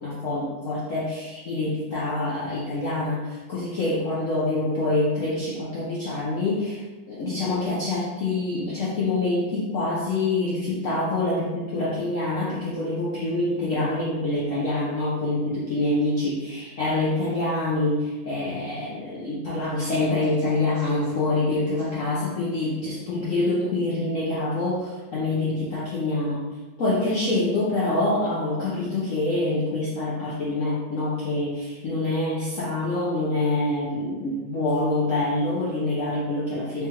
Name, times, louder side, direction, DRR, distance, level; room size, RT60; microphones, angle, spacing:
voice 1, 0.0-26.4 26.8-36.9, left 2 dB, 65° left, -7 dB, 0.8 m, -26 dB
3.5 x 3.2 x 2.9 m, 1.2 s
omnidirectional pair, 2.2 m